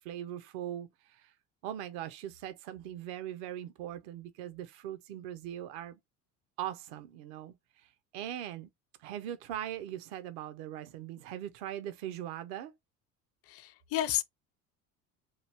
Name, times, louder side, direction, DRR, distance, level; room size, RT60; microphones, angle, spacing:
voice 1, 0.0-1.4 1.6-6.0 6.6-8.7 9.0-12.7, right 11 dB, 50° right, 0.5 m, -40 dB
voice 2, 13.5-14.2, left 13 dB, 30° left, 0.5 m, -31 dB
3.0 x 2.3 x 3.2 m
figure-of-eight pair, 65°, 47 cm